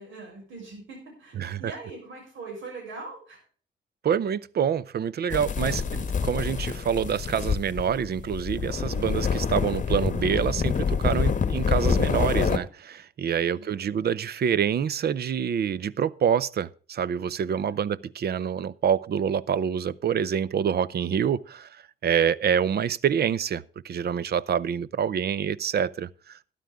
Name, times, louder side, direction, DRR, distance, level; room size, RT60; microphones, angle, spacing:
voice 1, 0.0-3.4 13.5-13.8 17.5-17.7, right 3 dB, 80° right, 6.2 m, -42 dB
voice 2, 1.4-1.7 4.0-26.5, right 8 dB, 55° right, 0.6 m, -26 dB
sound 1, 5.3-12.6, left 6 dB, 40° left, 1.1 m, -27 dB
13.0 x 11.5 x 3.5 m
cardioid pair, 115°, 19 cm